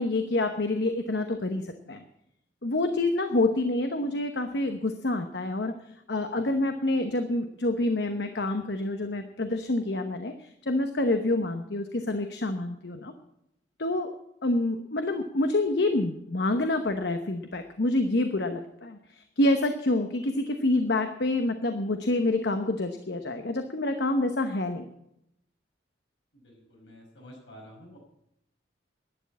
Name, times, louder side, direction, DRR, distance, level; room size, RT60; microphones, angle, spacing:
voice 1, 0.0-2.0 2.6-5.7 6.1-13.1 13.8-14.1 14.4-24.8, left 2 dB, 65° left, 6 dB, 0.9 m, -27 dB
voice 2, 26.3-28.0, equal, 80° left, 0 dB, 5.8 m, -50 dB
11.5 x 9.7 x 8.5 m, 0.79 s
head